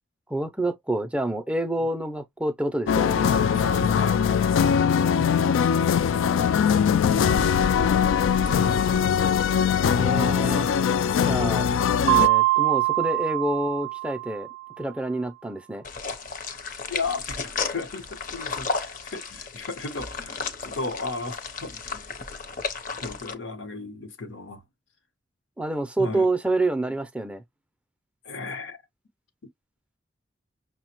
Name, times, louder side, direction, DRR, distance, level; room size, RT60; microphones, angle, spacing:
voice 1, 0.3-3.2 10.0-10.7 11.3-11.7 12.0-14.5 14.8-15.8 25.6-27.4, right 2 dB, 5° right, 0.4 m, -27 dB
sound 1, 2.9-12.3, left 7 dB, 90° left, 0.3 m, -21 dB
voice 2, 3.5-4.2 16.9-22.1 23.0-24.6 26.0-26.3 28.2-28.8, left 3 dB, 75° left, 0.9 m, -36 dB
Mallet percussion, 12.1-14.7, right 20 dB, 80° right, 0.3 m, -23 dB
sound 2, 15.8-23.3, left 4 dB, 45° left, 0.6 m, -34 dB
5.8 x 2.1 x 2.9 m
head